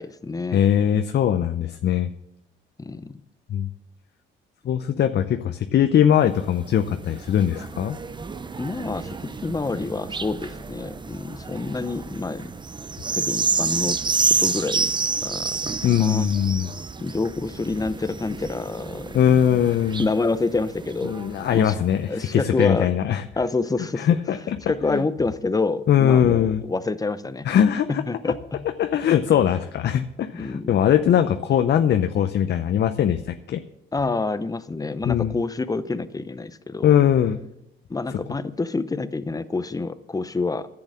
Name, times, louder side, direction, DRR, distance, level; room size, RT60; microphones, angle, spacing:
voice 1, 0.0-0.6 2.8-3.2 8.6-12.4 13.1-14.0 14.4-14.9 15.2-16.3 17.0-19.1 20.0-21.7 22.1-22.9 23.4-24.1 24.7-27.5 27.9-28.6 30.4-30.8 31.1-31.2 33.9-36.9 37.9-40.7, left 3 dB, 20° left, 13 dB, 0.7 m, -27 dB
voice 2, 0.5-2.1 3.5-3.7 4.6-8.0 15.8-16.7 19.1-20.1 21.0-23.2 24.0-24.6 24.9-25.0 25.9-26.6 27.4-28.0 28.8-33.6 35.0-35.4 36.8-37.4, left 9 dB, 60° left, 8 dB, 0.7 m, -21 dB
sound 1, 6.2-22.0 22.6-22.7, right 4 dB, 25° right, 0.6 m, -29 dB
10.5 x 8.0 x 7.4 m, 0.84 s
cardioid pair, 90°, 20 cm